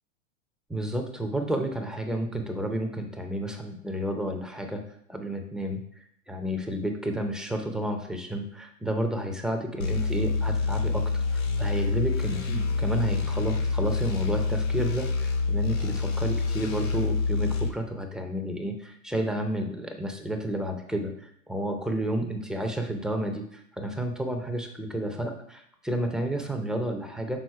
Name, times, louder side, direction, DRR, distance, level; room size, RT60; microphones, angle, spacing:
voice 1, 0.7-4.8 5.1-27.4, right 1 dB, ahead, 3 dB, 0.5 m, -31 dB
sound 1, 9.8-17.7, left 4 dB, 85° left, 2.0 m, -27 dB
6.4 x 3.9 x 4.6 m, 0.70 s
hypercardioid pair, 120°, 40 cm